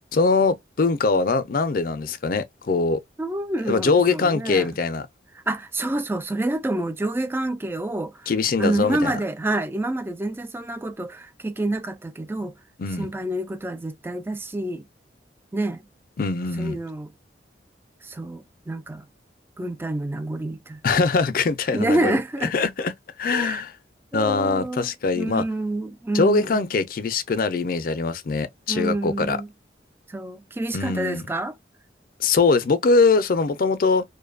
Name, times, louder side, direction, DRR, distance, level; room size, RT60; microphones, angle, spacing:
voice 1, 0.1-3.0 3.7-5.1 8.3-9.2 12.8-13.1 16.2-16.8 20.8-22.2 22.5-22.9 23.2-23.7 24.1-25.5 26.1-29.4 30.7-31.3 32.2-34.0, left 4 dB, 50° left, 0.4 m, -22 dB
voice 2, 3.2-4.7 5.5-8.3 8.6-12.5 13.0-14.9 15.5-15.8 16.6-17.1 18.0-19.1 19.6-20.8 21.7-22.5 23.2-23.6 24.1-24.9 25.1-26.6 28.7-29.5 30.1-31.6, right 1 dB, 15° right, 0.3 m, -28 dB
2.6 x 2.2 x 2.4 m
head